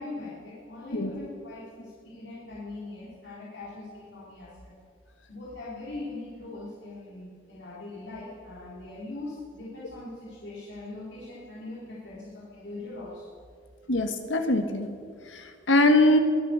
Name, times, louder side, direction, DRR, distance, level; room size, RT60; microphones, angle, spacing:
voice 1, 0.0-4.7 5.3-13.3, left 2 dB, 70° left, -8 dB, 3.8 m, -41 dB
voice 2, 13.9-14.9 15.3-16.2, left 1 dB, 90° left, 7 dB, 1.7 m, -22 dB
22.5 x 9.3 x 7.0 m, 2.2 s
head